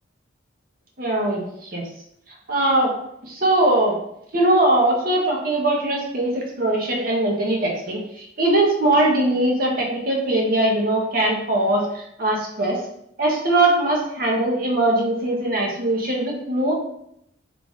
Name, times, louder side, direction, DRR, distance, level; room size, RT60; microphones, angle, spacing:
voice 1, 1.0-1.8 2.5-2.9 3.2-4.0 4.3-12.8 13.2-16.7, right 1 dB, 45° right, -1 dB, 0.8 m, -21 dB
3.8 x 2.3 x 3.5 m, 0.76 s
head